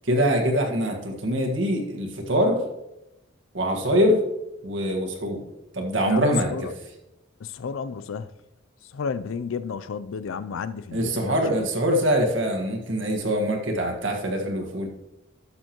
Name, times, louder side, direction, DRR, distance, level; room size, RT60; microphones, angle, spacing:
voice 1, 0.0-2.6 3.5-4.2 4.6-5.4 5.7-6.7 10.9-14.9, equal, 70° right, 1.6 m, -23 dB
voice 2, 6.1-6.7 7.4-8.3 8.9-11.7, left 6 dB, 90° left, 0.4 m, -32 dB
12.5 x 6.9 x 3.0 m
head